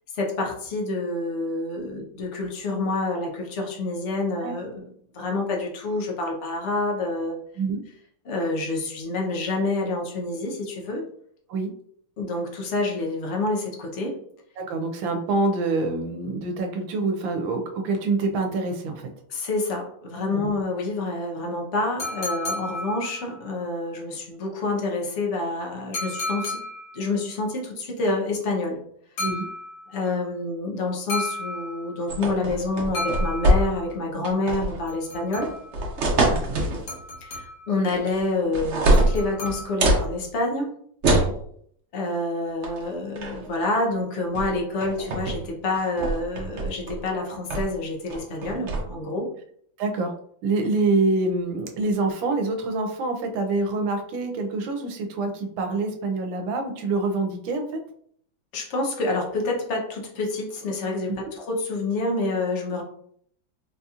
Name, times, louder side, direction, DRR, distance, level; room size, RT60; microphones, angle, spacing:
voice 1, 0.1-7.4 8.2-11.0 12.2-14.2 19.3-26.6 26.9-28.8 29.9-35.5 37.2-40.8 41.9-49.3 58.5-62.8, left 2 dB, 60° left, -1 dB, 0.7 m, -28 dB
voice 2, 14.6-19.1 20.3-20.5 29.2-29.4 36.3-36.6 41.1-41.3 49.8-50.1 50.4-57.6 61.1-61.2, right 3 dB, 80° right, 5 dB, 1.4 m, -26 dB
sound 1, 22.0-23.5 25.9-27.1 29.2-30.1 31.1-32.1 32.9-34.0 34.9-35.8 36.9-37.8 38.9-40.0, left 2 dB, 75° left, 2.1 m, -33 dB
sound 2, 32.1-33.9 34.2-34.8 35.4-36.8 37.9-38.3 38.5-40.1 41.0-41.4 42.6-42.8 43.2-43.5 44.4-44.5 44.8-45.4 45.7-47.0 47.5-47.8 48.1-48.8, right 1 dB, 60° right, 0.7 m, -23 dB
3.9 x 2.8 x 2.4 m, 0.65 s
omnidirectional pair, 2.1 m